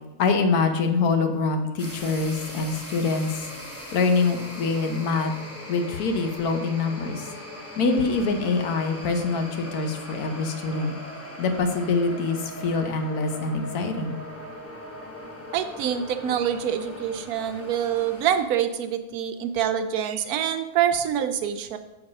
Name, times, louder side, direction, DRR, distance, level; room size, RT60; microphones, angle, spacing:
voice 1, 0.2-3.5 3.9-5.3 5.7-7.3 7.8-10.9 11.4-14.2, left 4 dB, 85° left, 6 dB, 1.3 m, -25 dB
sound 1, 1.8-18.4, left 1 dB, 10° left, 1.1 m, -40 dB
voice 2, 15.5-21.8, right 9 dB, 85° right, 8 dB, 1.1 m, -26 dB
7.0 x 4.7 x 5.3 m, 1.0 s
omnidirectional pair, 1.5 m